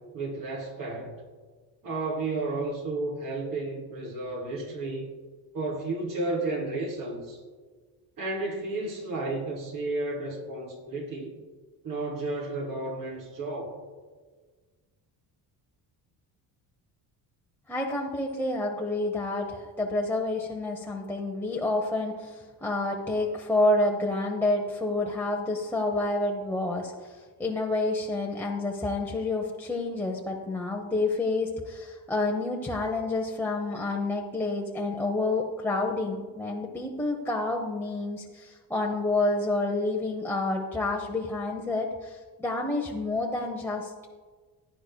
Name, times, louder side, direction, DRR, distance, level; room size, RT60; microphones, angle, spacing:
voice 1, 0.1-1.1 1.8-5.1 5.5-7.4 8.2-11.3 11.8-13.8, right 2 dB, 55° right, -2 dB, 3.2 m, -32 dB
voice 2, 17.7-44.1, left 2 dB, 5° left, -1 dB, 0.8 m, -29 dB
16.5 x 10.0 x 2.3 m, 1.4 s
cardioid pair, 140°, 41 cm